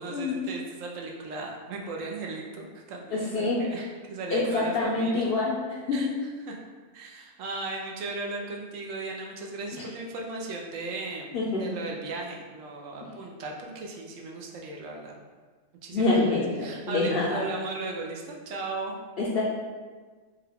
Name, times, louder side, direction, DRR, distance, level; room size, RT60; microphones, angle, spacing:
voice 1, 0.0-5.2 5.9-6.1 6.4-6.6 6.9-11.3 11.6-15.1 15.8-18.9, right 3 dB, 75° right, 0 dB, 0.9 m, -36 dB
voice 2, 3.1-3.6 4.3-5.5 5.9-6.0 11.3-11.6 15.9-17.4 19.2-19.4, left 3 dB, 60° left, -5 dB, 0.6 m, -26 dB
3.7 x 2.2 x 3.4 m, 1.4 s
omnidirectional pair, 1.4 m